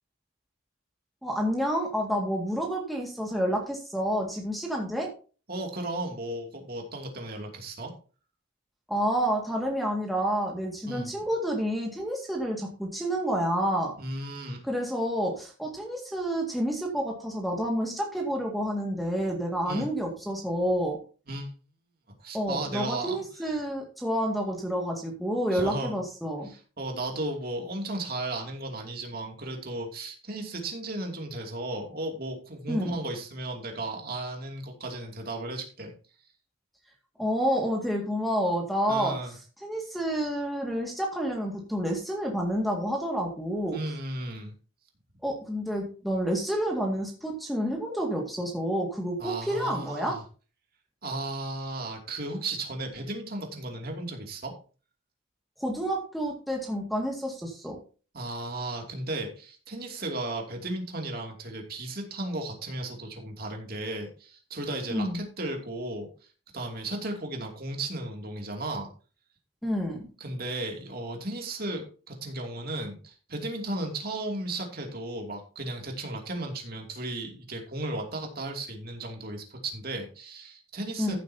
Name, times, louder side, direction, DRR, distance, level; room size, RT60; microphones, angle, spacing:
voice 1, 1.2-5.1 8.9-13.9 14.6-21.0 22.3-26.5 32.7-32.9 37.2-39.2 39.6-43.8 45.2-50.2 55.6-57.8 64.9-65.2 69.6-70.1 81.0-81.2, equal, ahead, 1 dB, 2.0 m, -29 dB
voice 2, 5.5-7.9 10.9-11.1 14.0-14.6 19.7-19.9 21.3-21.5 22.2-23.6 25.5-26.0 26.4-35.9 38.9-39.3 43.7-44.5 49.2-50.2 51.0-54.5 58.1-66.1 66.5-68.9 70.2-81.2, right 2 dB, 45° right, 2 dB, 2.7 m, -35 dB
14.5 x 8.0 x 2.8 m, 0.36 s
head